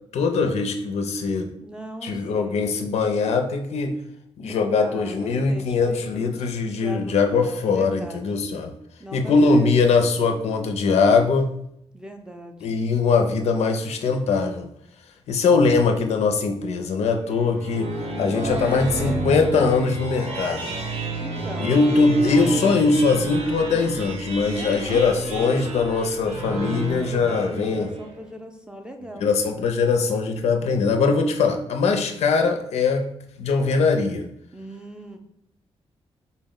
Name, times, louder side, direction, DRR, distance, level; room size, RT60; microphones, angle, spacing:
voice 1, 0.1-1.5 2.0-4.0 4.4-8.7 9.1-11.5 12.6-14.7 15.3-17.9 18.2-20.7 21.6-27.9 29.2-33.1 33.4-34.3, left 4 dB, 85° left, 5 dB, 0.4 m, -21 dB
voice 2, 1.6-2.7 4.5-6.3 6.6-8.3 9.0-9.7 11.9-12.8 18.4-19.5 21.2-21.7 23.7-24.0 24.5-25.3 27.1-29.2 32.0-32.2 34.5-35.2, equal, 10° right, 4 dB, 0.3 m, -39 dB
sound 1, 17.3-28.2, right 1 dB, 90° right, 0.8 m, -30 dB
4.0 x 2.1 x 3.7 m, 0.74 s
wide cardioid pair, 150°, 11 cm